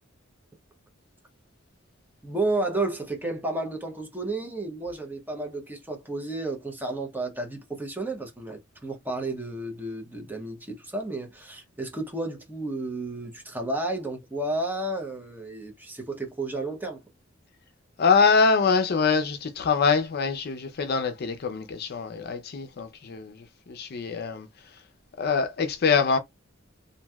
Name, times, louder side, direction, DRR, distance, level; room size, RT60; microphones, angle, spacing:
voice 1, 2.2-17.0, right 2 dB, 10° right, 0.7 m, -32 dB
voice 2, 18.0-24.5 25.2-26.2, left 5 dB, 50° left, 0.5 m, -24 dB
3.0 x 2.6 x 2.3 m
head